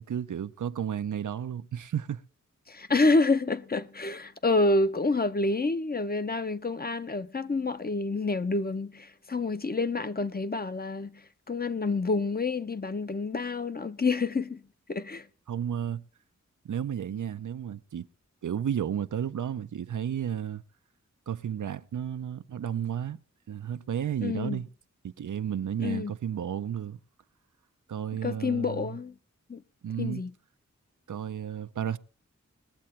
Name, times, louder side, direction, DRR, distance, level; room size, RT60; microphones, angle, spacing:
voice 1, 0.0-2.2 15.5-16.0 16.6-18.1 18.4-20.6 21.3-23.2 23.5-24.7 25.0-27.0 27.9-28.9 29.8-30.2 31.1-32.0, right 9 dB, 85° right, 0.6 m, -32 dB
voice 2, 2.7-14.6 14.9-15.3 24.2-24.6 25.8-26.1 28.2-29.1 29.5-29.6 30.0-30.3, left 3 dB, 30° left, 0.6 m, -28 dB
20.5 x 7.6 x 4.3 m
wide cardioid pair, 65°, 30 cm